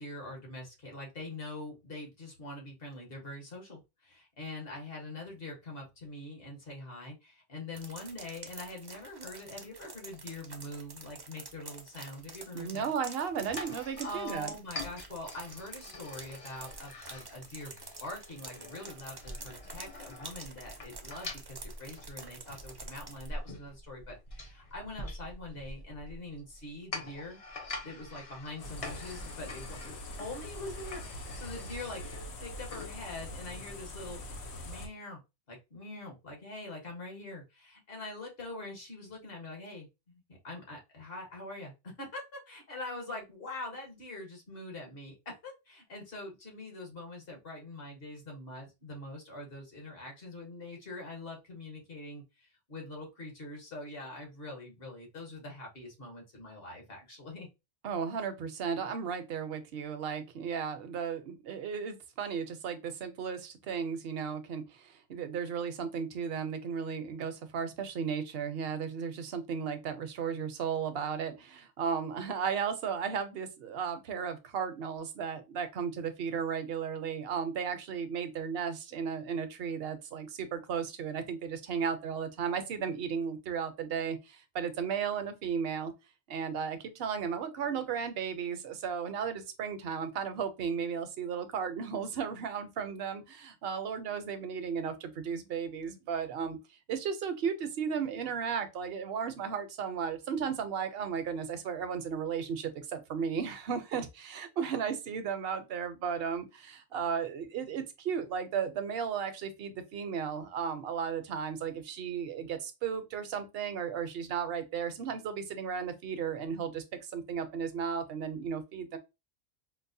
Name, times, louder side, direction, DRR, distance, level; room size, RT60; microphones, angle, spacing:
voice 1, 0.0-12.9 13.7-13.8 14.0-27.4 27.8-32.1 32.4-34.2 34.6-35.2 35.5-57.5, left 2 dB, 60° left, 1.4 m, -44 dB
sound 1, 7.7-23.3, right 3 dB, 35° right, 0.4 m, -48 dB
voice 2, 12.5-14.5 57.8-85.9 86.3-96.6 96.9-116.8 117.1-119.0, right 7 dB, 70° right, 0.8 m, -35 dB
sound 2, 13.4-32.9, left 2 dB, 40° left, 0.6 m, -45 dB
sound 3, 28.6-34.9, left 1 dB, 80° left, 1.0 m, -43 dB
4.6 x 2.1 x 2.6 m
omnidirectional pair, 1.1 m